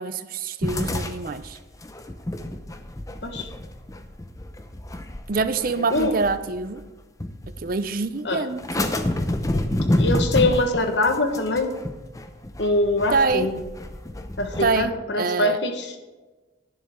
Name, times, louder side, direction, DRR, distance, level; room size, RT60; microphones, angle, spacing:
voice 1, 0.0-1.6 5.3-6.8 7.6-8.9 13.1-13.5 14.6-15.6, right 4 dB, 50° right, 12 dB, 0.5 m, -25 dB
sound 1, 0.6-6.8 7.2-7.8 8.6-14.9, left 1 dB, 15° left, 0.6 m, -28 dB
voice 2, 10.0-11.8 12.6-13.5 14.4-15.9, left 2 dB, 65° left, 6 dB, 1.3 m, -23 dB
11.5 x 10.5 x 3.6 m, 1.2 s
head